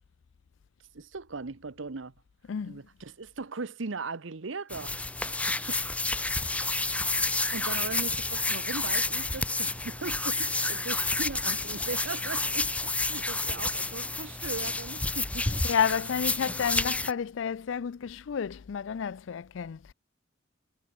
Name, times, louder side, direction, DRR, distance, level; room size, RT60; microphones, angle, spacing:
voice 1, 0.9-2.1 2.6-5.8 6.2-6.4 7.5-15.5, right 4 dB, 75° right, 0.9 m, -39 dB
voice 2, 2.5-2.8 15.6-19.9, left 7 dB, 65° left, 0.4 m, -30 dB
sound 1, 4.7-17.1, left 2 dB, 5° left, 0.5 m, -30 dB
head